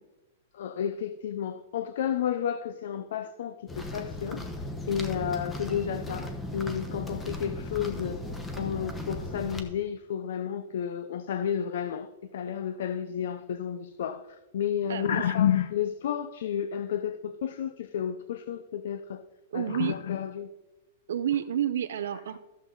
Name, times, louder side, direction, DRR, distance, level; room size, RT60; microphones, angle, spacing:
voice 1, 0.5-4.4 4.9-8.2 8.6-12.1 12.3-19.2 19.5-20.5, left 9 dB, 70° left, 0.6 m, -31 dB
sound 1, 3.7-9.6, left 1 dB, 10° left, 1.1 m, -37 dB
voice 2, 14.9-15.3 19.5-19.9 21.1-22.4, right 10 dB, 80° right, 0.6 m, -30 dB
14.0 x 7.3 x 4.0 m
supercardioid pair, 160°, 0 cm